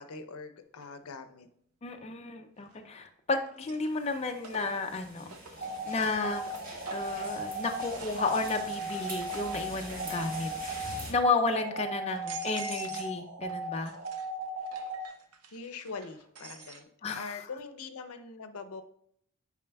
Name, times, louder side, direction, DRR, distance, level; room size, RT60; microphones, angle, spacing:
voice 1, 0.0-1.5 15.5-16.9 17.1-18.8, left 4 dB, 85° left, 9 dB, 0.6 m, -42 dB
sound 1, 0.8-0.9 2.6-3.1 3.5-7.2 7.7-10.3 10.6-11.1 11.7-11.8 12.1-13.2 13.5-16.8, right 5 dB, 90° right, 0.8 m, -49 dB
voice 2, 1.8-5.3 5.9-6.5 6.9-13.9 17.0-17.2, left 3 dB, 30° left, 4 dB, 0.4 m, -32 dB
sound 2, 3.9-11.1, right 1 dB, 40° right, 1.6 m, -45 dB
sound 3, 5.6-15.0, right 2 dB, 55° right, 2.0 m, -37 dB
8.5 x 4.9 x 2.3 m, 0.69 s
head